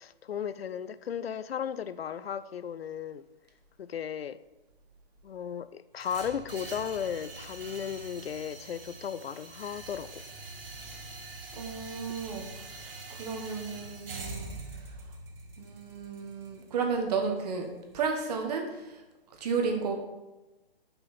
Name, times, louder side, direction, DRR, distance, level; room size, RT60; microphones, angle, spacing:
voice 1, 0.0-3.2 3.8-4.4 5.2-10.2, left 8 dB, 85° left, 15 dB, 0.5 m, -35 dB
sound 1, 6.0-18.0, right 3 dB, 70° right, 1.4 m, -44 dB
voice 2, 11.5-12.5 12.7-14.5 15.6-17.7 17.9-19.0 19.4-19.9, right 5 dB, 45° right, 3 dB, 1.3 m, -33 dB
5.6 x 5.5 x 4.2 m, 1.1 s
hypercardioid pair, 140°, 30 cm